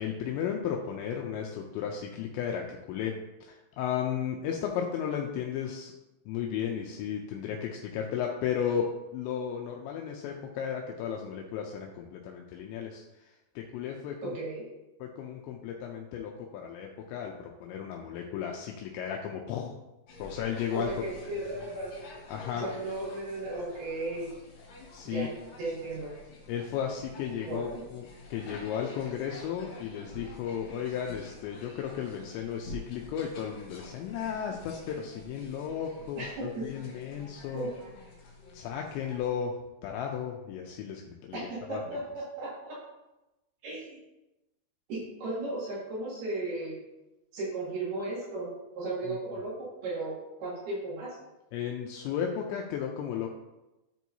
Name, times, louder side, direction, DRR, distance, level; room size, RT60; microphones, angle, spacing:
voice 1, 0.0-3.1 3.4-5.9 6.3-8.9 9.1-13.0 13.6-14.4 15.0-19.7 20.2-20.9 22.3-22.7 24.9-25.3 26.5-37.7 38.5-39.5 39.8-41.8 49.1-49.2 51.5-53.3, left 8 dB, 85° left, 1 dB, 2.8 m, -34 dB
voice 2, 14.2-14.6 20.7-21.9 22.6-24.3 25.0-25.3 25.6-26.1 27.3-27.8 36.2-36.6 37.5-37.7 41.3-42.8 43.6-44.0 44.9-46.8 47.3-48.5 48.7-51.2, right 2 dB, 60° right, -7 dB, 3.7 m, -35 dB
sound 1, 20.1-39.3, left 2 dB, 65° left, 3.4 m, -48 dB
13.0 x 4.5 x 2.7 m, 0.98 s
omnidirectional pair, 5.4 m